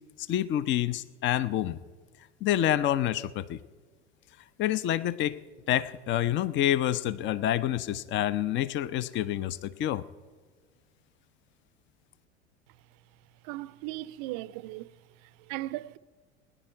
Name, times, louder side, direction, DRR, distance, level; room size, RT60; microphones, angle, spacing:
voice 1, 0.2-1.8 2.4-3.6 4.6-5.4 5.7-10.0, left 12 dB, 35° left, 0.6 m, -28 dB
voice 2, 13.4-14.9 15.2-16.0, right 17 dB, 50° right, 0.5 m, -37 dB
20.0 x 10.0 x 4.5 m
figure-of-eight pair, 75°, 34 cm